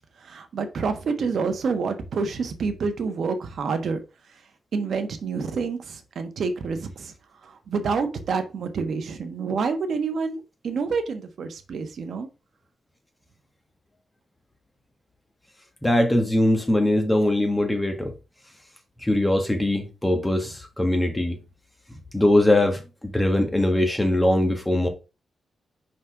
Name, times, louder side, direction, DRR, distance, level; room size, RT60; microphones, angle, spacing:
voice 1, 0.2-4.0 4.7-7.1 7.4-10.4 10.6-12.3, right 5 dB, 65° right, 1.2 m, -28 dB
voice 2, 15.8-18.1 19.0-21.4 22.1-24.9, left 1 dB, 10° left, 1.5 m, -21 dB
5.3 x 4.2 x 4.6 m
cardioid pair, 105°, 0 cm